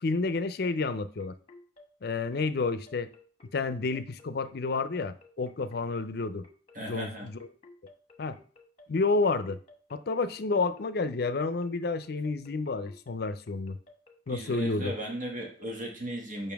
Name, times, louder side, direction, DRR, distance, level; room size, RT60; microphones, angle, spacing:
voice 1, 0.0-1.3 2.0-3.1 3.5-6.4 6.8-7.4 8.2-8.4 8.9-9.6 9.9-13.8 14.3-14.9, left 3 dB, 60° left, 0.5 m, -30 dB
sound 1, 0.6-15.9, left 3 dB, 35° left, 1.0 m, -55 dB
voice 2, 6.7-7.3 14.3-16.5, equal, 50° right, 1.9 m, -36 dB
7.1 x 5.4 x 3.5 m
head